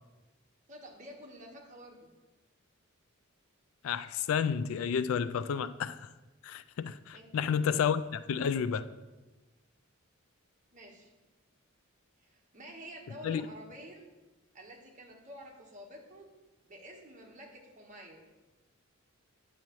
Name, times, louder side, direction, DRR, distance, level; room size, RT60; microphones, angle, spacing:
voice 1, 0.7-2.1 7.1-7.5 10.7-11.1 12.2-14.0 14.5-18.2, equal, 35° right, 1.2 m, -50 dB
voice 2, 3.8-6.1 6.4-8.8 13.2-13.4, left 7 dB, 75° left, 0.3 m, -31 dB
8.9 x 7.0 x 3.0 m
head